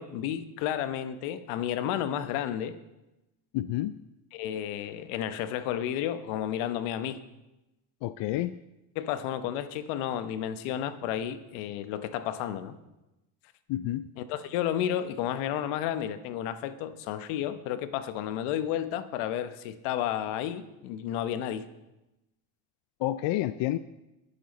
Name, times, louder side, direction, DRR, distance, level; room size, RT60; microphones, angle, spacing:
voice 1, 0.0-2.8 4.3-7.2 8.9-12.8 14.2-21.7, left 10 dB, 80° left, 1.0 m, -32 dB
voice 2, 3.5-3.9 8.0-8.5 13.7-14.1 23.0-23.8, left 15 dB, 60° left, 0.6 m, -29 dB
21.0 x 7.1 x 4.2 m
supercardioid pair, 75°, 49 cm